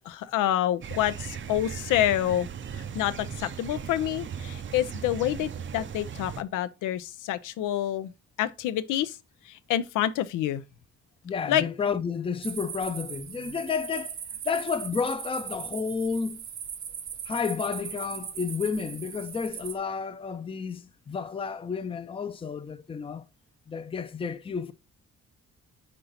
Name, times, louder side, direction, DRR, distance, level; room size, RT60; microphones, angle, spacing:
voice 1, 0.0-2.5 2.7-8.1 8.4-9.2 9.4-10.6 11.5-11.7, left 12 dB, 85° left, 0.6 m, -28 dB
sound 1, 0.8-6.4, right 7 dB, 40° right, 0.6 m, -38 dB
voice 2, 11.2-14.2 14.4-16.4 17.3-23.3 23.7-24.7, left 5 dB, 20° left, 0.5 m, -31 dB
sound 2, 12.4-19.8, right 8 dB, 65° right, 1.1 m, -39 dB
5.4 x 4.4 x 4.1 m
cardioid pair, 90°, 30 cm